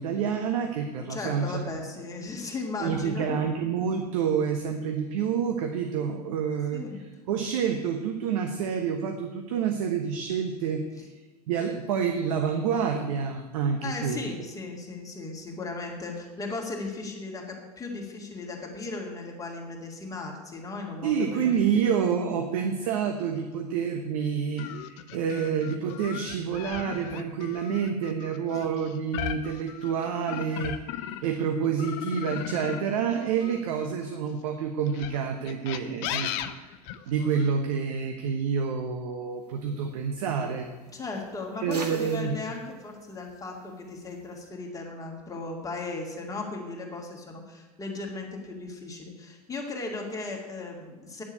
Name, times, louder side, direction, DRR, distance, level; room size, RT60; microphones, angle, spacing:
voice 1, 0.0-1.6 2.8-6.8 7.3-10.8 11.5-14.3 21.0-36.7 37.1-40.7 41.6-42.3, right 7 dB, 60° right, 5 dB, 1.2 m, -28 dB
voice 2, 1.1-3.4 6.7-7.0 13.8-21.5 28.5-28.6 40.9-51.2, left 3 dB, 15° left, 0 dB, 2.3 m, -36 dB
sound 1, 24.6-31.4 31.8-34.2 34.9-37.5, left 11 dB, 50° left, 0.8 m, -37 dB
sound 2, 39.4-44.5, right 3 dB, 80° right, 1.7 m, -48 dB
10.0 x 7.1 x 8.4 m, 1.3 s
figure-of-eight pair, 85°, 20 cm